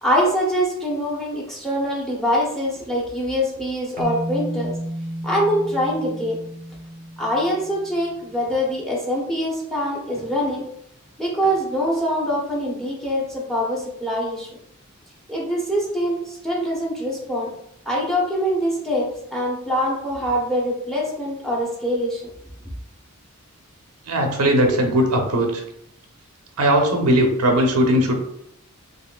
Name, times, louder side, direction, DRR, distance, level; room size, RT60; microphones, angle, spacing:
voice 1, 0.0-4.7 5.2-6.4 7.2-10.6 11.2-14.5 15.3-17.5 17.9-22.2, equal, ahead, -3 dB, 0.9 m, -24 dB
sound 1, 4.0-8.3, right 1 dB, 40° right, 0.7 m, -32 dB
voice 2, 24.1-25.6 26.6-28.1, right 1 dB, 90° right, 2 dB, 0.8 m, -18 dB
4.1 x 3.2 x 2.3 m, 0.73 s
head